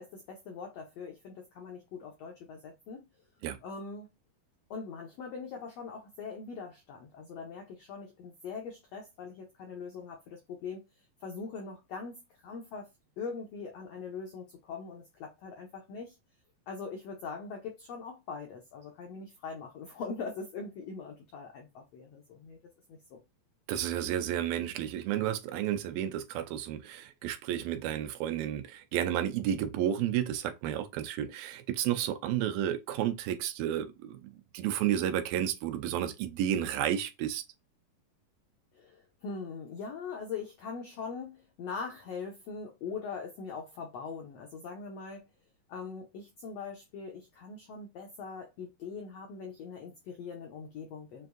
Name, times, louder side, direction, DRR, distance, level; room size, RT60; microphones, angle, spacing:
voice 1, 0.0-3.0 3.6-4.1 4.7-10.8 11.2-12.9 13.2-16.1 16.7-22.6 22.9-23.2 38.7-45.2 45.7-51.3, left 5 dB, 85° left, 1.4 m, -42 dB
voice 2, 23.7-34.3 34.5-37.4, right 11 dB, 85° right, 2.5 m, -31 dB
6.6 x 2.6 x 2.5 m
omnidirectional pair, 4.0 m